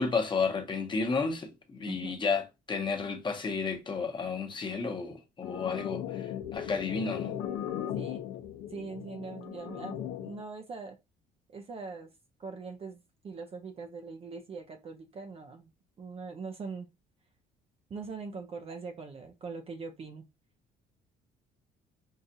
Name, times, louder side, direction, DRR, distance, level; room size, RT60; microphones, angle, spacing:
voice 1, 0.0-7.4, left 4 dB, 30° left, 1.0 m, -32 dB
voice 2, 1.9-2.2 7.9-8.2 8.7-11.0 11.5-12.1 12.4-15.7 16.0-16.9 17.9-20.3, right 4 dB, 35° right, 0.5 m, -42 dB
sound 1, 5.4-10.4, left 10 dB, 80° left, 0.6 m, -37 dB
5.5 x 2.4 x 2.6 m
cardioid pair, 110°, 17 cm